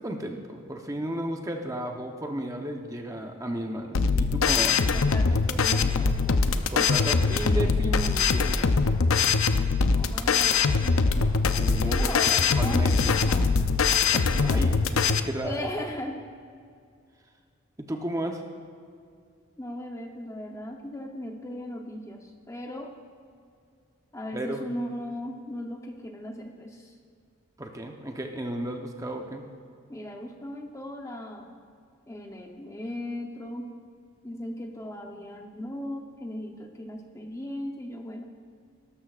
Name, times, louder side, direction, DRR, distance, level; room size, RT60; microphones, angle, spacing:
voice 1, 0.0-4.9 6.7-8.7 11.5-12.2 12.6-13.2 14.1-14.7 15.0-15.5 17.8-18.4 24.3-24.6 27.6-29.4, right 1 dB, 15° right, 3 dB, 0.8 m, -33 dB
sound 1, 3.9-15.2, left 4 dB, 85° left, 0.6 m, -23 dB
voice 2, 4.2-6.5 9.9-10.9 11.8-13.5 14.3-14.7 15.4-16.2 19.6-22.9 24.1-27.0 29.9-31.5 32.1-33.7 34.2-38.2, left 1 dB, 15° left, 2 dB, 0.7 m, -37 dB
18.0 x 13.0 x 2.4 m, 2.2 s
head